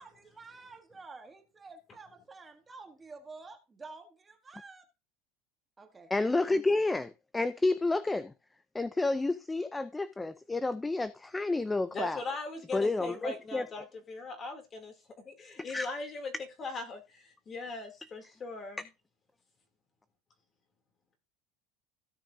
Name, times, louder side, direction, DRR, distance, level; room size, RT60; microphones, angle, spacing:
voice 1, 0.0-4.9 5.8-6.1, right 3 dB, 15° right, 1.2 m, -50 dB
voice 2, 6.1-8.3 8.7-12.2 12.7-13.6 15.7-15.9, left 2 dB, 10° left, 0.5 m, -30 dB
voice 3, 11.9-16.3 16.6-18.9, left 3 dB, 25° left, 2.8 m, -40 dB
16.5 x 6.3 x 2.7 m
supercardioid pair, 135°, 0 cm